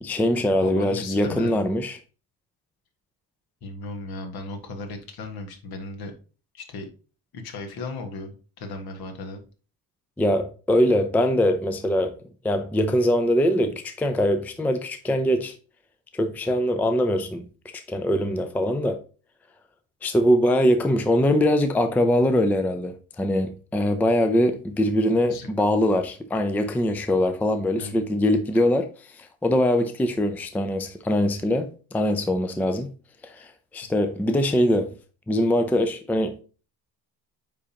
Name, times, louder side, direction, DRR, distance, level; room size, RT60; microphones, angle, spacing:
voice 1, 0.0-2.0 10.2-12.1 12.4-15.5 16.1-17.4 17.9-19.0 20.0-28.9 29.1-32.9 33.2-34.9 35.3-36.4, left 1 dB, 5° left, 0.4 m, -22 dB
voice 2, 0.6-1.7 3.6-6.1 6.5-6.9 7.3-9.5 25.3-25.5 26.6-26.8 27.8-28.1, left 3 dB, 65° left, 1.7 m, -36 dB
9.2 x 3.7 x 2.9 m
cardioid pair, 150°, 40 cm